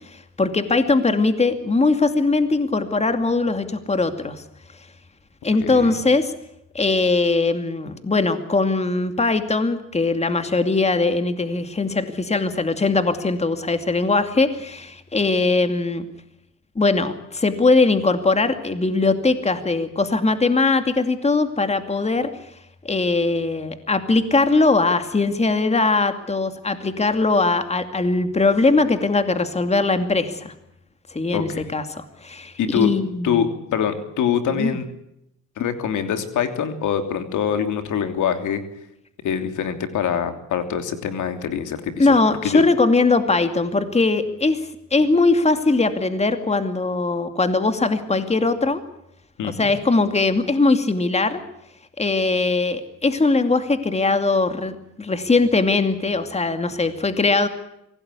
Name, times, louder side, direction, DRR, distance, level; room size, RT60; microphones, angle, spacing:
voice 1, 0.1-4.4 5.4-6.3 6.7-16.1 16.8-22.3 22.8-30.5 31.1-33.5 34.5-34.7 42.0-44.6 44.9-48.8 49.4-51.4 52.0-57.5, left 3 dB, 20° left, 8 dB, 2.5 m, -20 dB
voice 2, 5.6-6.0 31.3-31.7 32.6-32.9 33.2-34.9 35.6-38.6 39.2-42.7 49.4-49.7, left 8 dB, 75° left, 8 dB, 3.1 m, -24 dB
25.0 x 17.5 x 8.4 m, 0.83 s
cardioid pair, 90°, 30 cm